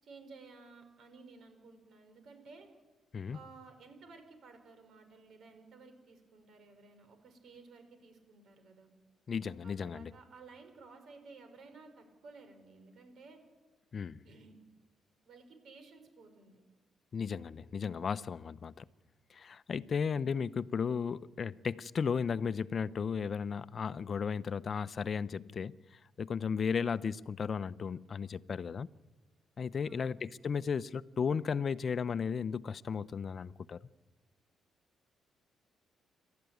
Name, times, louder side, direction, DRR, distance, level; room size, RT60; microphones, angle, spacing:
voice 1, 0.0-2.7 3.3-8.9 9.6-13.4 14.2-14.6 15.3-16.6 29.8-30.2, right 4 dB, 65° right, 5.8 m, -55 dB
voice 2, 9.3-10.1 13.9-14.2 17.1-18.8 19.3-28.9 29.6-33.8, left 6 dB, 45° left, 0.7 m, -35 dB
28.5 x 13.0 x 9.5 m
cardioid pair, 90°, 0 cm